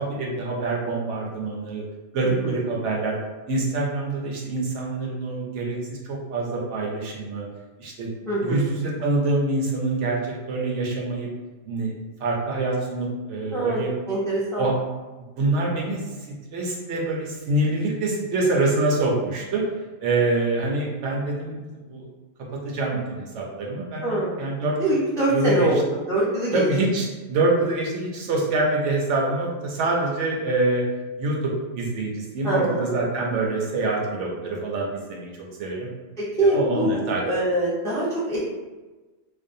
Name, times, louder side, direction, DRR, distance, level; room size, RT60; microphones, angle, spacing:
voice 1, 0.0-1.8 2.1-3.2 3.5-7.5 7.8-8.1 8.4-11.3 11.7-11.9 12.2-13.9 14.6-14.7 15.4-16.0 16.5-19.6 20.0-22.1 22.5-24.8 25.3-25.7 26.5-30.8 31.2-35.9 36.4-37.2, right 2 dB, 75° right, -2 dB, 0.9 m, -25 dB
voice 2, 2.2-2.5 8.3-8.6 13.5-14.6 24.0-24.3 24.8-25.8 26.1-26.6 32.4-32.9 36.2-38.5, right 1 dB, 5° left, -8 dB, 0.4 m, -24 dB
2.5 x 2.1 x 2.5 m, 1.2 s
omnidirectional pair, 1.3 m